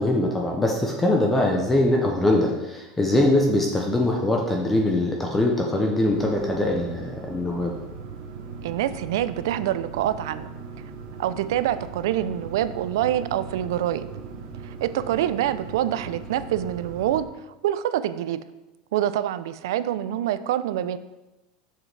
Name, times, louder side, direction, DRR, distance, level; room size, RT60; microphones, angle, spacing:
voice 1, 0.0-7.7, left 1 dB, 10° left, 0 dB, 0.6 m, -22 dB
sound 1, 6.1-17.2, right 5 dB, 50° right, 0.7 m, -39 dB
voice 2, 8.6-10.5 11.2-14.1 14.6-17.3 17.6-18.4 18.9-21.0, right 11 dB, 85° right, 13 dB, 0.4 m, -26 dB
7.3 x 6.5 x 3.3 m, 1.1 s
supercardioid pair, 175°, 2 cm